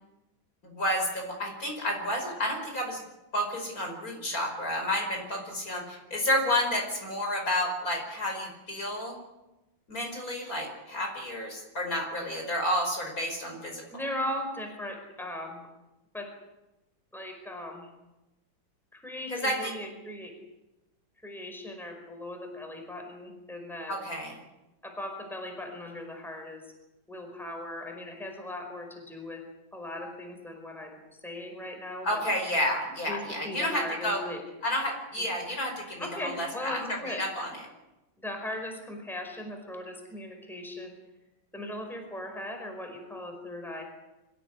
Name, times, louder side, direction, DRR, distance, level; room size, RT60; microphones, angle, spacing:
voice 1, 0.6-3.0 3.3-9.1 9.9-13.8 19.3-19.7 23.9-24.4 32.0-34.2 34.6-37.5, left 1 dB, 45° left, 2 dB, 5.6 m, -30 dB
voice 2, 13.9-15.6 16.1-16.3 17.1-17.9 18.9-20.3 21.2-24.1 24.8-26.6 27.1-29.4 29.7-32.2 33.1-34.4 36.0-37.2 38.2-40.9 41.5-43.8, left 1 dB, ahead, 3 dB, 5.0 m, -38 dB
25.5 x 16.0 x 9.8 m, 1.0 s
omnidirectional pair, 2.2 m